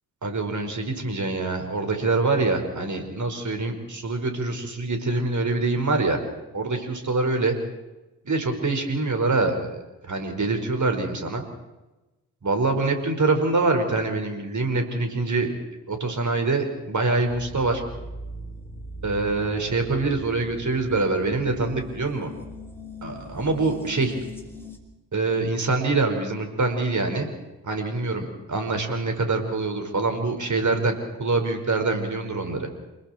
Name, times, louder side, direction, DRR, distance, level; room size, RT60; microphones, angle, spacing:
voice 1, 0.2-6.2 6.5-7.6 8.3-9.8 10.1-11.4 12.4-15.5 15.9-17.8 19.0-22.3 23.0-24.2 25.1-27.3 27.6-30.9 31.2-32.7, right 3 dB, 40° right, 5 dB, 5.3 m, -25 dB
sound 1, 17.3-24.8, left 1 dB, 5° left, 5.2 m, -40 dB
28.5 x 21.0 x 4.6 m, 1.1 s
hypercardioid pair, 45°, 47 cm